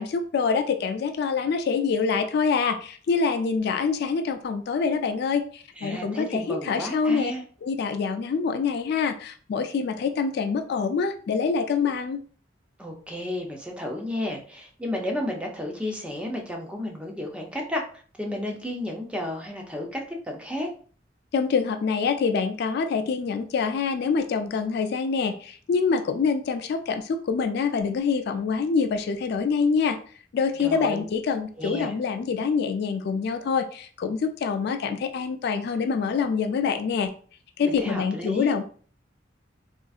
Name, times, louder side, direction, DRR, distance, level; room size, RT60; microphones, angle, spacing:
voice 1, 0.0-7.3 7.6-12.2 21.3-30.0 30.3-37.1 37.6-38.6, left 5 dB, 60° left, 7 dB, 0.3 m, -25 dB
voice 2, 5.8-7.4 12.8-20.7 30.6-31.0 31.6-31.9 37.6-38.5, left 1 dB, 5° right, 0 dB, 0.5 m, -32 dB
3.7 x 2.5 x 2.3 m, 0.43 s
head